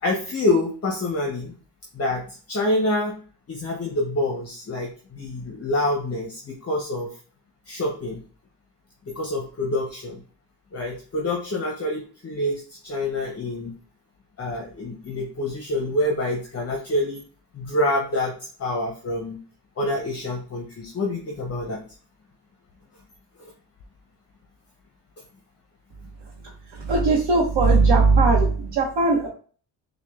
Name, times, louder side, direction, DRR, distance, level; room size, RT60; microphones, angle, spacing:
voice 1, 0.0-1.5 1.9-3.2 3.5-7.1 7.7-8.2 9.1-10.2 10.7-13.7 14.4-17.2 17.5-19.4 19.8-21.8, left 1 dB, 35° left, 0 dB, 0.7 m, -27 dB
voice 2, 26.4-29.3, right 3 dB, 70° right, -2 dB, 0.9 m, -19 dB
5.9 x 2.2 x 2.3 m, 0.42 s
cardioid pair, 90°, 44 cm